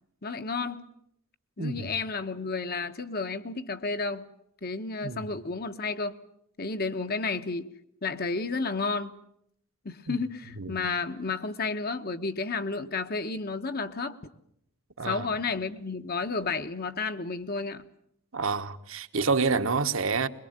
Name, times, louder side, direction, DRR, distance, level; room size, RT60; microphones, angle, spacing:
voice 1, 0.2-0.8 1.6-4.2 4.6-6.2 6.6-7.7 8.0-9.1 9.8-14.2 15.0-17.8, left 4 dB, 45° left, 1.2 m, -31 dB
voice 2, 1.6-1.9 5.0-5.3 10.1-10.2 10.6-10.7 15.0-15.3 18.3-20.3, right 4 dB, 65° right, 1.3 m, -28 dB
22.5 x 22.5 x 9.0 m
head